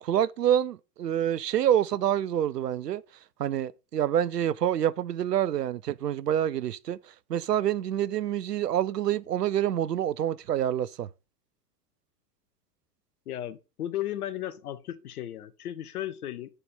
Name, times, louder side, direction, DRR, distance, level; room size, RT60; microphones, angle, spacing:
voice 1, 0.0-3.0 3.4-7.0 7.3-11.1, right 10 dB, 85° right, 0.6 m, -27 dB
voice 2, 13.3-16.5, left 12 dB, 70° left, 1.0 m, -35 dB
6.8 x 4.3 x 5.3 m
figure-of-eight pair, 95°, 47 cm